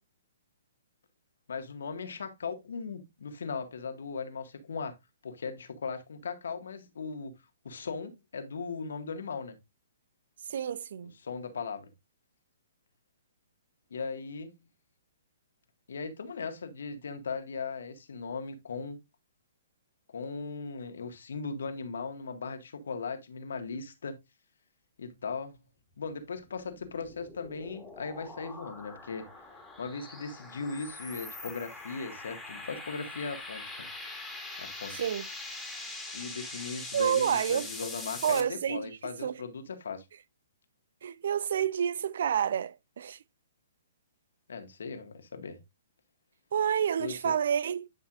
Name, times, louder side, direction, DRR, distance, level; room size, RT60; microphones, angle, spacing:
voice 1, 1.5-4.9 5.2-7.3 7.6-9.5 11.2-11.9 13.9-14.5 15.9-19.0 20.1-24.2 25.0-25.6 26.0-29.2 29.8-33.9 34.6-35.0 36.1-40.0 44.5-45.6 47.0-47.3, left 5 dB, 70° left, 1.7 m, -38 dB
voice 2, 10.5-11.1 35.0-35.3 36.9-37.7 38.2-38.8 39.2-39.4 41.0-43.2 46.5-47.9, right 8 dB, 60° right, 0.5 m, -29 dB
sound 1, 26.4-38.4, left 2 dB, 5° left, 2.2 m, -43 dB
10.5 x 5.6 x 2.5 m
hypercardioid pair, 130°, 0 cm